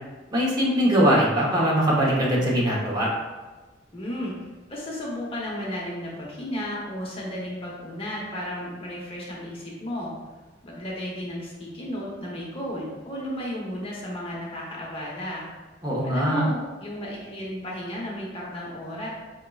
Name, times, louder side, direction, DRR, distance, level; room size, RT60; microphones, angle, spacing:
voice 1, 0.3-3.1 15.8-16.4, equal, 20° right, -6 dB, 0.9 m, -21 dB
voice 2, 3.9-4.4 4.7-10.1 10.6-15.4 16.0-19.1, left 1 dB, 30° left, -4 dB, 0.9 m, -33 dB
5.2 x 3.6 x 2.3 m, 1.2 s
head